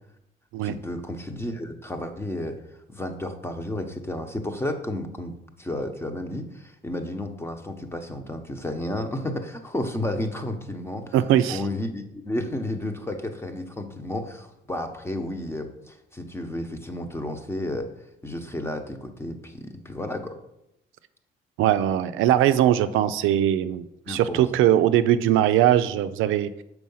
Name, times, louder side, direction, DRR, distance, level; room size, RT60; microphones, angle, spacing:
voice 1, 0.6-2.6 2.9-11.1 11.5-17.9 18.2-20.4 24.1-24.5, left 1 dB, 10° left, 6 dB, 0.9 m, -32 dB
voice 2, 11.1-11.6 21.6-26.5, right 11 dB, 90° right, 11 dB, 0.4 m, -21 dB
6.2 x 4.7 x 5.5 m, 0.83 s
cardioid pair, 90°, 20 cm